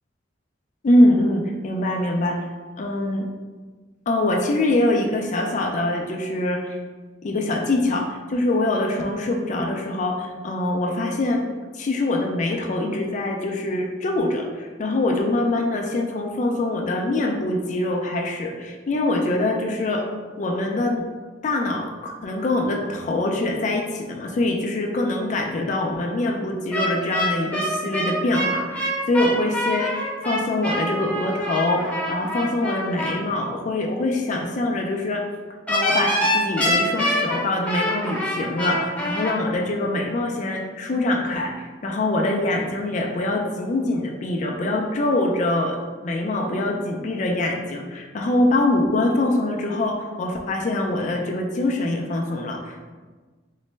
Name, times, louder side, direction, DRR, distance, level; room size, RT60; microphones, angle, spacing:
voice 1, 0.8-2.5 2.8-3.3 4.1-6.8 7.2-11.4 11.7-20.1 20.4-21.0 21.4-35.2 35.7-52.9, left 2 dB, 40° left, 1 dB, 0.4 m, -24 dB
sound 1, 26.7-33.2 35.7-39.3, equal, 5° left, 0.7 m, -25 dB
3.9 x 2.1 x 3.2 m, 1.4 s
head